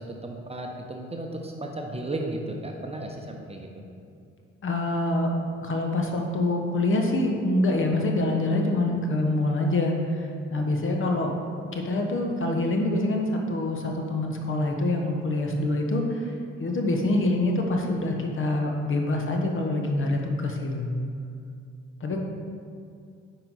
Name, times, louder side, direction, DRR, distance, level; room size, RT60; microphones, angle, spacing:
voice 1, 0.0-3.7, right 1 dB, 20° right, 1 dB, 0.9 m, -34 dB
voice 2, 4.6-5.3 5.6-20.9 22.0-22.2, left 2 dB, 35° left, 2 dB, 1.1 m, -26 dB
9.9 x 4.0 x 4.0 m, 2.3 s
figure-of-eight pair, 40°, 34 cm